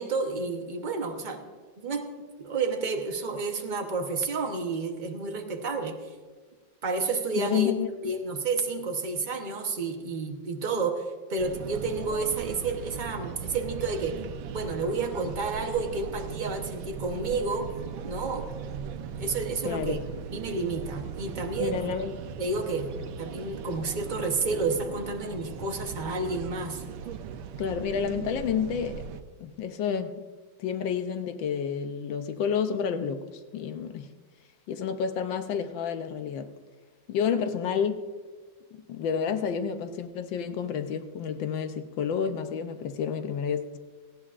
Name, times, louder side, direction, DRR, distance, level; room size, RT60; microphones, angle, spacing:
voice 1, 0.0-1.4 1.8-6.1 6.8-7.7 8.0-14.2 14.5-17.7 18.0-18.5 19.2-20.0 20.3-21.9 22.4-26.8, right 3 dB, 45° right, 0.6 m, -30 dB
voice 2, 7.3-8.1 19.6-20.0 21.6-22.1 27.6-29.0 29.4-30.1 30.6-34.1 34.7-36.5 37.1-38.0 38.9-43.8, left 7 dB, 75° left, 1.4 m, -30 dB
Jarry Park Montréal QC, 11.4-29.2, right 7 dB, 80° right, 1.5 m, -38 dB
18.5 x 14.5 x 2.5 m
omnidirectional pair, 2.2 m